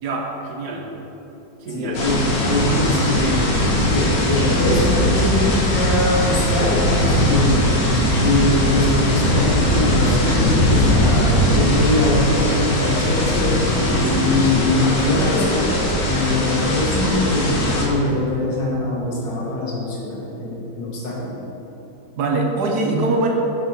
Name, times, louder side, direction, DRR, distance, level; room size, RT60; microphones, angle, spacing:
voice 1, 0.0-0.9 1.6-2.0 22.2-23.3, right 2 dB, 65° right, 1 dB, 1.3 m, -23 dB
voice 2, 1.7-7.7 8.2-21.4, left 1 dB, 75° left, -4 dB, 2.2 m, -22 dB
sound 1, 1.9-17.9, left 1 dB, 55° left, 1.7 m, -19 dB
9.2 x 5.4 x 4.2 m, 3.0 s
omnidirectional pair, 2.0 m